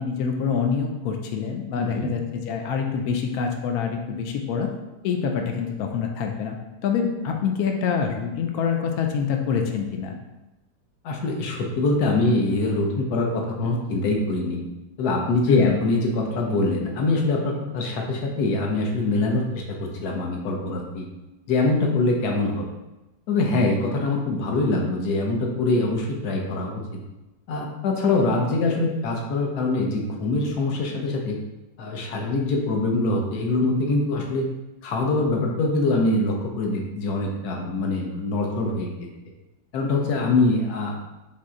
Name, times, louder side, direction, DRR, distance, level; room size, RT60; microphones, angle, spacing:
voice 1, 0.0-4.7 5.0-6.6 6.8-10.1 15.5-15.8, left 6 dB, 85° left, 3 dB, 0.8 m, -25 dB
voice 2, 1.8-2.1 11.0-14.6 15.0-21.1 21.5-22.7 23.3-26.8 27.5-31.4 31.8-34.4 34.8-39.1 39.7-41.1, left 2 dB, 65° left, 1 dB, 1.1 m, -24 dB
4.2 x 3.1 x 3.6 m, 1.0 s
omnidirectional pair, 2.1 m